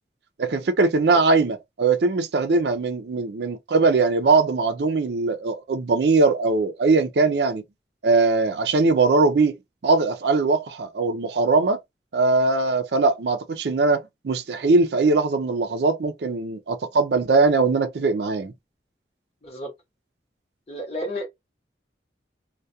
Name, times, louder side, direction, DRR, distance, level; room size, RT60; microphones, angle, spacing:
voice 1, 0.4-7.6 8.0-9.6 9.8-11.8 12.1-18.5, right 3 dB, 70° right, 0.5 m, -21 dB
voice 2, 20.7-21.3, equal, 35° left, 0.9 m, -32 dB
2.3 x 2.2 x 2.6 m
head